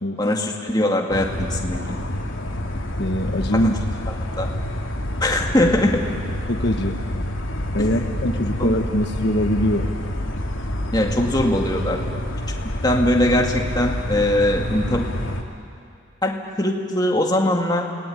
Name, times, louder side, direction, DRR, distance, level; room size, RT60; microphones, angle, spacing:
voice 1, 0.2-2.0 3.6-3.7 4.4-4.5 5.2-6.0 7.9-8.0 8.6-8.8 10.9-12.0 12.6-15.1 16.2-17.8, left 1 dB, 20° left, 1 dB, 2.2 m, -21 dB
sound 1, 1.1-15.4, left 1 dB, 85° left, 2.7 m, -27 dB
voice 2, 3.0-3.8 6.5-7.0 7.7-9.9, equal, 55° left, 4 dB, 1.4 m, -22 dB
28.5 x 19.0 x 10.0 m, 2.4 s
head